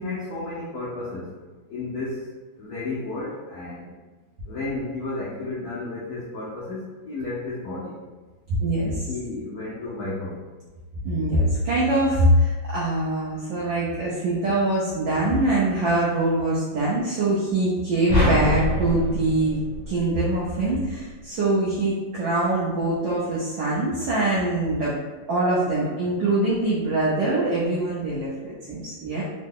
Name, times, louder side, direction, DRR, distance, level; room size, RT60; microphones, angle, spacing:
voice 1, 0.0-1.3 1.7-2.3 2.6-3.9 4.5-8.0 8.8-10.4, left 2 dB, 80° left, -7 dB, 0.8 m, -32 dB
voice 2, 8.6-9.0 11.0-25.0 25.3-29.2, right 1 dB, 70° right, -6 dB, 1.2 m, -23 dB
sound 1, 18.1-20.5, left 1 dB, 30° left, 0.5 m, -25 dB
3.7 x 2.0 x 3.6 m, 1.3 s
omnidirectional pair, 2.4 m